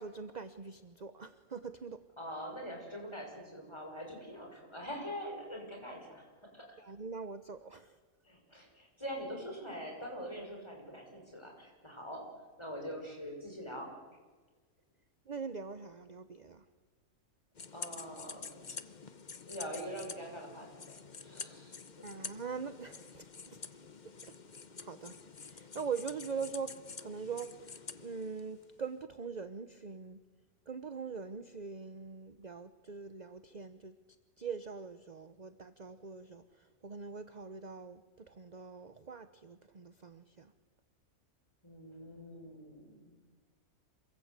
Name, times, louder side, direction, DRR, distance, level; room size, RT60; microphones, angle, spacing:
voice 1, 0.0-2.0 6.8-8.0 15.3-16.6 22.0-23.6 24.2-24.3 24.8-26.7 27.0-30.2 30.7-34.0 34.4-40.5, right 5 dB, 35° right, 11 dB, 0.9 m, -43 dB
voice 2, 2.2-6.7 8.2-12.3 12.6-13.9 17.7-18.8 19.5-21.8 41.6-43.0, equal, 20° left, 2 dB, 6.6 m, -44 dB
sound 1, 17.5-28.8, left 5 dB, 35° left, 1.0 m, -48 dB
27.5 x 24.5 x 8.2 m, 1.4 s
omnidirectional pair, 1.5 m